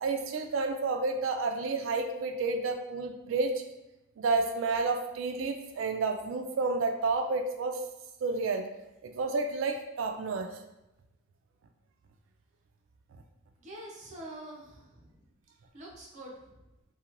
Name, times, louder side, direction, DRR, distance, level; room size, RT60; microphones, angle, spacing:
voice 1, 0.0-3.6 4.2-7.8 8.2-8.7 9.0-10.6, right 3 dB, 80° right, 6 dB, 0.4 m, -30 dB
voice 2, 13.6-15.2 15.7-16.7, right 1 dB, 40° right, -4 dB, 0.7 m, -46 dB
2.9 x 2.2 x 2.5 m, 0.95 s
head